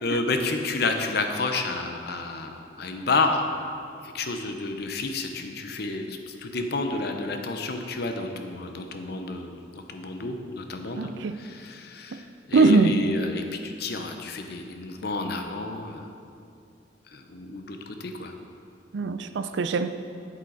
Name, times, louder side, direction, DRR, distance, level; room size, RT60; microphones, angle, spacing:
voice 1, 0.0-3.4 4.0-16.0 17.1-18.3, left 3 dB, 60° left, 5 dB, 0.8 m, -30 dB
voice 2, 11.0-11.4 12.1-12.2 12.5-13.0 18.9-19.9, right 3 dB, 80° right, 10 dB, 0.4 m, -22 dB
8.6 x 8.1 x 4.0 m, 2.4 s
head